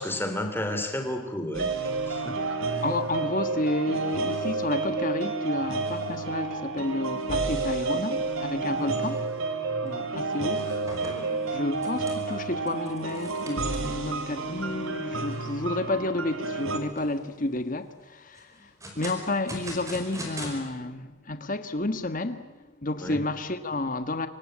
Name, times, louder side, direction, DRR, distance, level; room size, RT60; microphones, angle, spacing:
voice 1, 0.0-1.7 2.1-2.4 8.7-8.9 23.0-23.2, left 1 dB, 10° left, 3.1 m, -31 dB
sound 1, 1.5-16.8, right 3 dB, 85° right, 3.3 m, -30 dB
voice 2, 2.2-9.2 9.8-10.7 11.5-18.7 18.9-22.5 22.8-24.3, left 2 dB, 40° left, 1.5 m, -31 dB
sound 2, 9.9-10.1 10.4-14.1 14.6-14.7 15.1-15.2 15.7-16.1 16.7-17.3 18.4-20.5, equal, 15° right, 5.0 m, -41 dB
26.5 x 25.0 x 8.8 m
head